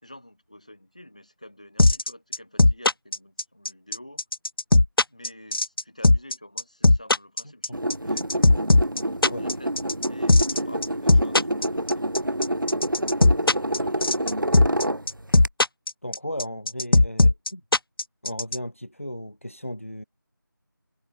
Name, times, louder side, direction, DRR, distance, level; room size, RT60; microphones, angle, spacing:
voice 1, 0.0-4.2 5.1-8.8 9.1-12.0 13.3-14.5, left 1 dB, 20° left, 4.7 m, -48 dB
sound 1, 1.8-18.6, left 2 dB, 85° left, 0.5 m, -17 dB
sound 2, 7.7-15.5, right 1 dB, 65° right, 1.5 m, -27 dB
voice 2, 16.0-17.6 18.2-20.0, equal, 35° left, 2.2 m, -35 dB
figure-of-eight pair, 180°, 12 cm